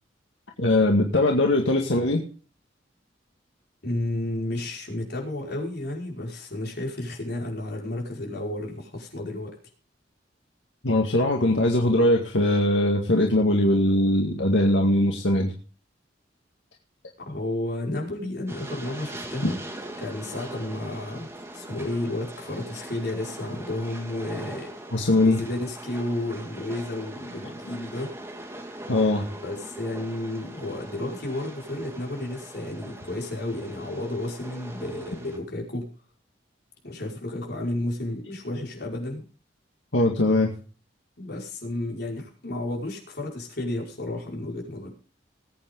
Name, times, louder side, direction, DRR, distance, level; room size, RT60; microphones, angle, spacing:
voice 1, 0.6-2.2 10.8-15.5 19.4-19.5 24.9-25.4 28.9-29.2 39.9-40.5, left 1 dB, 85° left, 1 dB, 2.1 m, -21 dB
voice 2, 3.8-9.5 17.2-19.6 20.0-21.3 21.5-24.7 25.2-28.1 29.3-35.9 36.8-39.2 41.2-44.9, left 1 dB, 60° left, -1 dB, 5.3 m, -32 dB
Train, 18.5-35.4, right 1 dB, 15° right, 2.3 m, -41 dB
20.0 x 8.8 x 3.9 m, 0.39 s
head